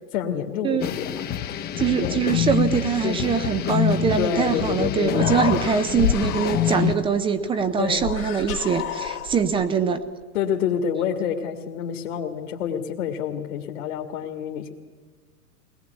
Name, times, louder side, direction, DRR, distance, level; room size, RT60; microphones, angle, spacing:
voice 1, 0.1-1.3 1.5-2.2 3.0-3.2 4.2-5.4 7.8-8.1 10.3-14.7, left 8 dB, 60° left, 2 dB, 2.1 m, -28 dB
sound 1, 0.8-6.9, left 9 dB, 20° left, 0.9 m, -26 dB
voice 2, 1.8-10.0, right 6 dB, 10° right, 11 dB, 0.6 m, -23 dB
Human voice, 5.0-7.0 7.9-9.6, left 9 dB, 75° left, 2.6 m, -29 dB
22.0 x 19.0 x 8.3 m, 1.5 s
hypercardioid pair, 125°, 45 cm